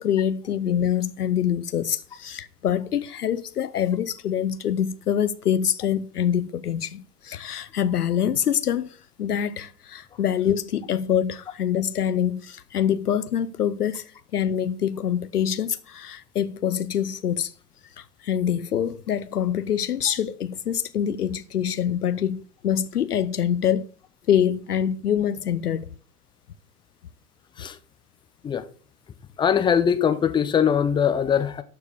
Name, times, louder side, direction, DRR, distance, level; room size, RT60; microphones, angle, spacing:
voice 1, 0.0-17.5 18.0-23.9 24.3-25.9, left 9 dB, 70° left, 0.8 m, -25 dB
voice 2, 29.4-31.6, left 8 dB, 10° left, 0.6 m, -21 dB
12.0 x 4.7 x 6.5 m
figure-of-eight pair, 95°, 48 cm